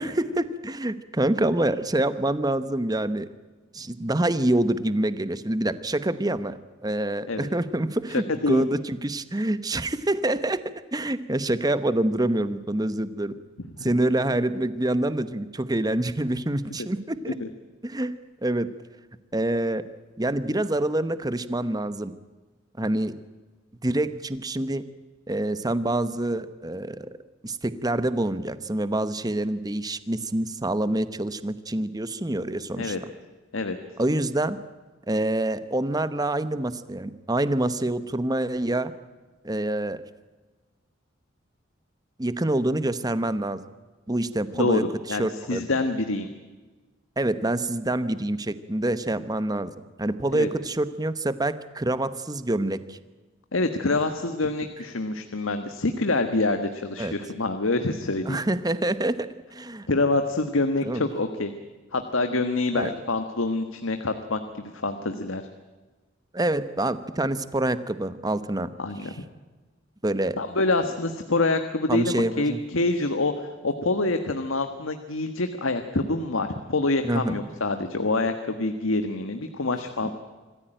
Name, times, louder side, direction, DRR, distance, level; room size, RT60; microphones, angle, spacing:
voice 1, 0.0-3.3 3.7-10.6 10.9-13.3 13.8-17.4 17.8-18.1 18.4-18.7 19.3-19.8 20.2-22.1 22.8-23.1 23.8-24.8 25.3-27.1 27.4-32.9 34.0-34.6 35.1-38.9 39.4-40.0 42.2-43.6 44.1-45.6 47.2-49.7 50.0-53.0 57.0-57.1 58.2-59.9 60.8-61.1 62.7-62.9 66.3-68.7 70.0-70.4 71.9-72.6 77.0-77.4 80.0-80.1, right 1 dB, 20° right, 13 dB, 1.0 m, -26 dB
voice 2, 44.5-46.3 50.3-50.5 53.5-58.4 59.9-61.5 61.9-65.4 68.8-69.1 70.4-73.3 73.6-80.1, left 2 dB, 90° left, 7 dB, 1.5 m, -26 dB
26.0 x 14.5 x 9.0 m, 1.3 s
head